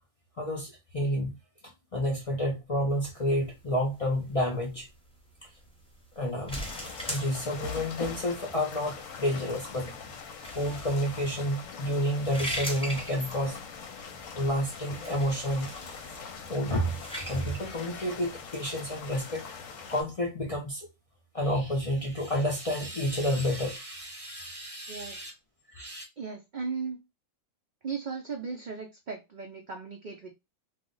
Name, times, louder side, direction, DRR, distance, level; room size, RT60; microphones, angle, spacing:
voice 1, 0.4-1.4 1.6-4.9 6.2-6.6 7.1-9.9 10.5-13.6 14.3-15.7 16.5-19.5 19.9-20.9 21.3-25.3 25.7-26.0, equal, 50° left, 0.4 m, -30 dB
sound 1, 2.9-19.1, equal, 5° left, 0.6 m, -42 dB
sound 2, 6.5-20.0, left 5 dB, 70° left, 1.0 m, -42 dB
voice 2, 24.9-25.3 26.2-27.0 27.8-30.3, right 5 dB, 75° right, 0.4 m, -37 dB
2.4 x 2.0 x 3.7 m
omnidirectional pair, 1.4 m